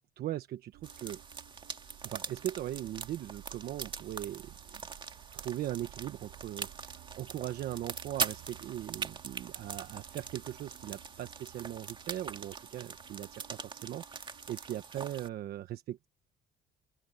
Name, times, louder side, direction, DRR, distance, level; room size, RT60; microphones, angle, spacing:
voice 1, 0.2-1.2 2.0-4.8 5.3-16.1, right 12 dB, 65° right, 1.1 m, -39 dB
sound 1, 0.7-14.8, right 15 dB, 85° right, 1.7 m, -56 dB
sound 2, 0.8-15.3, right 5 dB, 30° right, 2.1 m, -42 dB
open air
cardioid pair, 110°, 17 cm